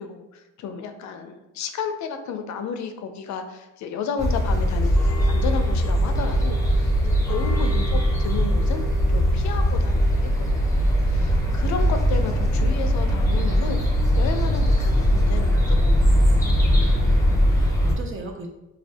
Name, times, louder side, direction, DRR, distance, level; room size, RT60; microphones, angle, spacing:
voice 1, 0.0-8.8 9.1-16.4, left 6 dB, 70° left, 7 dB, 0.4 m, -33 dB
sound 1, 4.2-17.9, equal, 10° left, 0.8 m, -20 dB
voice 2, 7.6-8.0 17.0-18.5, right 3 dB, 45° right, 2 dB, 0.6 m, -38 dB
2.5 x 2.3 x 3.3 m, 0.96 s
cardioid pair, 90°, 30 cm